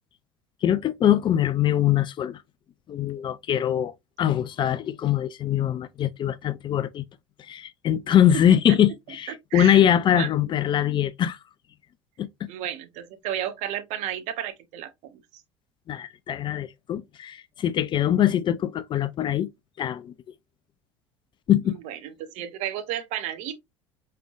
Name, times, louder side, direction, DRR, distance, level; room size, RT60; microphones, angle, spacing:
voice 1, 0.6-2.4 2.9-7.0 7.4-11.4 12.2-12.3 15.9-19.5 19.8-20.1 21.5-21.7, left 10 dB, 35° left, 0.4 m, -23 dB
voice 2, 12.5-15.1 21.8-23.6, right 11 dB, 55° right, 0.8 m, -32 dB
5.0 x 3.3 x 2.4 m
hypercardioid pair, 70°, 14 cm